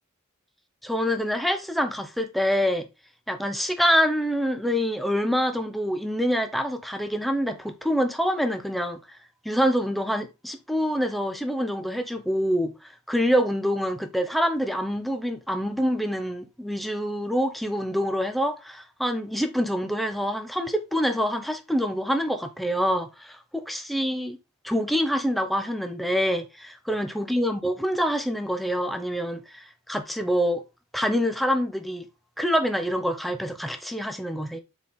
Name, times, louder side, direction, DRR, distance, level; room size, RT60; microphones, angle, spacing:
voice 1, 0.8-2.9 3.3-9.2 9.4-24.4 24.6-30.6 30.9-32.1 32.4-34.6, equal, ahead, 0.9 m, -26 dB
6.9 x 4.5 x 3.8 m
head